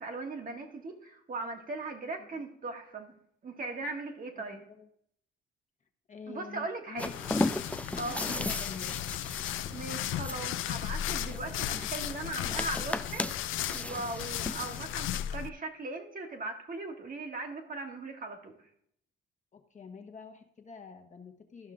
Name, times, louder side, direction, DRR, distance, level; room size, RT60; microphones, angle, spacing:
voice 1, 0.0-3.1 3.4-4.6 6.3-7.1 7.9-8.5 9.7-13.4 13.7-18.5, right 3 dB, 45° right, 3 dB, 1.5 m, -39 dB
voice 2, 4.4-4.9 6.1-7.4 8.1-9.1 19.5-21.7, left 5 dB, 40° left, 5 dB, 1.1 m, -47 dB
sound 1, 7.0-15.5, left 12 dB, 80° left, 0.4 m, -35 dB
sound 2, 7.0-15.1, left 2 dB, 5° left, 0.4 m, -37 dB
12.5 x 5.6 x 3.7 m, 0.69 s
cardioid pair, 90°, 20 cm